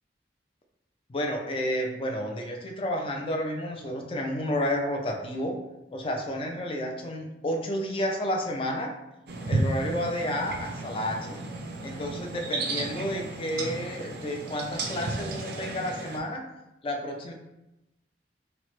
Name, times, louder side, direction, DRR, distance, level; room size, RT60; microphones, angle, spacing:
voice 1, 1.1-5.6 5.9-8.9 9.5-11.4 11.8-16.5 16.8-17.3, equal, 30° left, 2 dB, 0.4 m, -31 dB
sound 1, 9.3-16.2, right 2 dB, 60° right, 0.4 m, -33 dB
2.9 x 2.1 x 3.0 m, 0.93 s
head